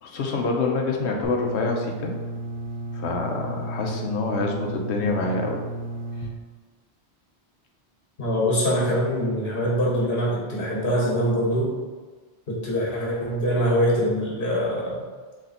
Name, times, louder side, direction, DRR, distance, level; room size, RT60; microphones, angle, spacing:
voice 1, 0.0-2.1 2.9-5.6, left 3 dB, 80° left, 1 dB, 1.0 m, -26 dB
sound 1, 1.2-6.2, right 1 dB, 10° left, 0.8 m, -33 dB
voice 2, 8.2-11.7 12.5-15.0, equal, 55° left, -4 dB, 1.5 m, -23 dB
3.8 x 3.4 x 4.1 m, 1.4 s
omnidirectional pair, 1.1 m